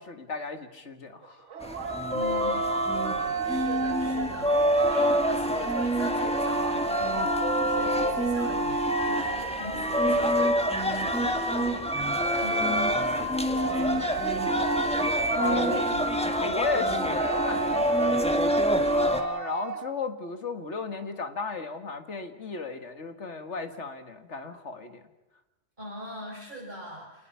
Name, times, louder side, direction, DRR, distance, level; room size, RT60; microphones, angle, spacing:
voice 1, 0.0-1.8 3.1-3.4 15.4-15.8 16.4-18.3 18.9-25.0, left 4 dB, 75° left, 7 dB, 2.1 m, -34 dB
sound 1, 1.2-9.9 12.2-20.0, right 6 dB, 85° right, 1.4 m, -34 dB
sound 2, 1.6-19.2, equal, 5° left, 1.5 m, -26 dB
voice 2, 2.1-2.7 3.1-15.1 15.3-16.0 25.8-27.3, equal, 40° right, -5 dB, 6.3 m, -42 dB
28.0 x 19.5 x 5.8 m, 1.0 s
omnidirectional pair, 1.2 m